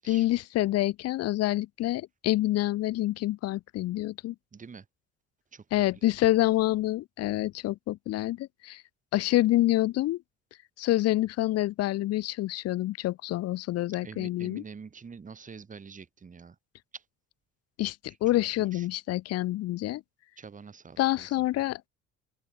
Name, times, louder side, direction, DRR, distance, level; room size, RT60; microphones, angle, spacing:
voice 1, 0.1-4.3 5.7-8.8 9.1-10.2 10.8-14.6 17.8-20.0 21.0-21.8, left 16 dB, 55° left, 0.7 m, -27 dB
voice 2, 4.5-4.9 5.5-6.1 14.0-16.6 16.9-17.0 18.3-18.9 20.4-21.3, right 5 dB, 25° right, 2.1 m, -46 dB
open air
supercardioid pair, 90°, 30 cm